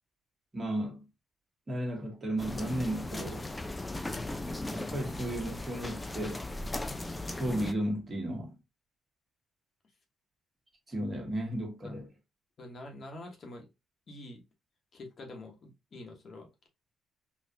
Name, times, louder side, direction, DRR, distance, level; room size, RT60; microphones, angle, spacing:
voice 1, 0.5-1.0 1.7-3.5 4.7-6.4 7.3-8.6 10.9-12.1, right 1 dB, 30° right, 1.4 m, -34 dB
sound 1, 2.4-7.7, left 2 dB, 15° left, 0.4 m, -37 dB
voice 2, 12.6-13.7 14.1-14.4 14.9-16.7, left 2 dB, 50° left, 1.1 m, -46 dB
4.0 x 2.4 x 2.8 m
cardioid pair, 90°, 0 cm